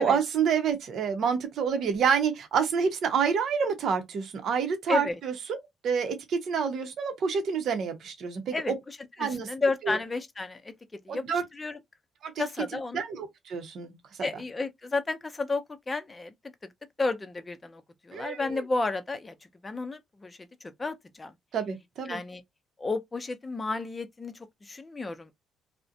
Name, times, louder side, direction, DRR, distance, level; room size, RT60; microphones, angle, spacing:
voice 1, 0.0-5.6 5.8-8.7 9.2-9.5 9.8-10.0 11.1-11.4 12.2-12.4 12.9-13.9 14.2-14.3 18.1-18.6 21.5-22.2, right 6 dB, 70° right, 0.7 m, -28 dB
voice 2, 4.9-5.2 8.5-10.7 11.1-11.8 12.4-13.0 14.2-16.3 17.0-19.4 19.6-21.3 22.1-22.4 22.8-25.3, left 3 dB, 25° left, 0.5 m, -32 dB
2.4 x 2.1 x 2.6 m
cardioid pair, 90°, 0 cm